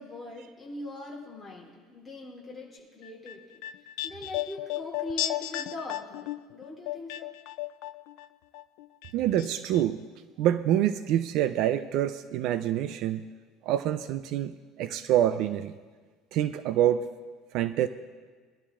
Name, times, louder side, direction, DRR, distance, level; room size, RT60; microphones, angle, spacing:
voice 1, 0.0-3.6 4.0-7.3, left 2 dB, 5° left, -6 dB, 3.1 m, -41 dB
sound 1, 3.0-8.3 8.5-9.5 9.7-9.8, left 15 dB, 75° left, 0.4 m, -35 dB
voice 2, 9.1-10.0 10.4-13.2 13.6-15.7 16.3-17.1 17.5-17.9, right 11 dB, 55° right, 12 dB, 0.4 m, -26 dB
21.5 x 12.5 x 2.4 m, 1.5 s
cardioid pair, 160°, 0 cm